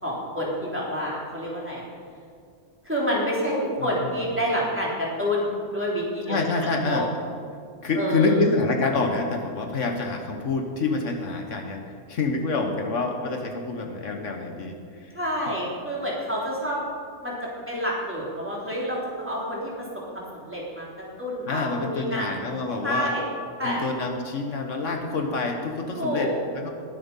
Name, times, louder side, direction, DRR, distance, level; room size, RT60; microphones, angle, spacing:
voice 1, 0.0-1.9 2.8-7.0 7.9-8.4 15.1-16.8 17.2-19.9 20.1-20.9 21.2-22.3 22.8-23.3 23.6-23.8 25.9-26.4, equal, 10° right, -5 dB, 3.4 m, -28 dB
voice 2, 3.8-4.2 6.3-7.2 7.8-11.8 12.1-15.2 15.5-15.6 21.5-23.1 23.6-26.7, left 3 dB, 70° left, 3 dB, 1.4 m, -27 dB
20.5 x 7.7 x 5.5 m, 2.3 s
omnidirectional pair, 1.3 m